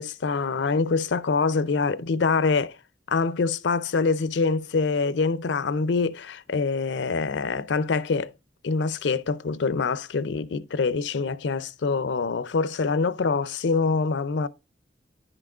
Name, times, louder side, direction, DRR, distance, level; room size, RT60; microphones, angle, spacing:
voice 1, 0.0-2.8 3.1-8.3 8.6-14.5, left 4 dB, 75° left, 0.5 m, -25 dB
10.5 x 6.0 x 2.4 m
head